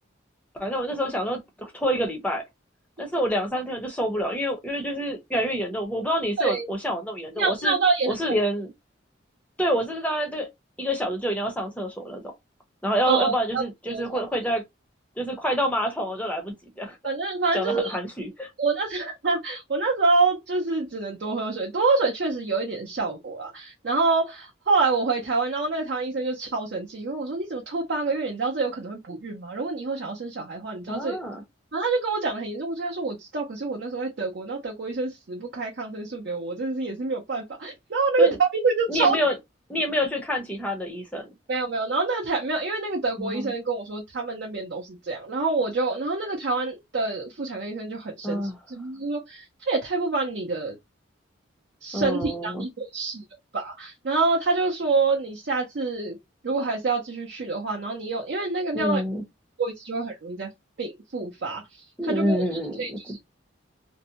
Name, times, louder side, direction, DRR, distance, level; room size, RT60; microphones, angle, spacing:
voice 1, 0.5-2.4 3.0-7.7 8.1-8.7 9.6-10.5 10.8-12.3 12.8-14.6 15.2-17.1 17.5-18.5 30.9-31.4 38.2-38.4 38.9-39.4 39.7-41.3 43.2-43.5 48.2-48.6 51.9-52.6 58.7-59.2 62.0-63.2, equal, 5° left, 0.6 m, -27 dB
voice 2, 7.4-8.1 13.1-14.2 17.0-18.0 18.6-31.2 31.7-39.2 41.5-50.7 51.8-53.2 53.5-56.2 56.4-59.0 59.6-60.5 60.8-61.6 62.0-62.4 62.8-63.2, right 3 dB, 55° right, 0.5 m, -26 dB
2.6 x 2.1 x 2.7 m
head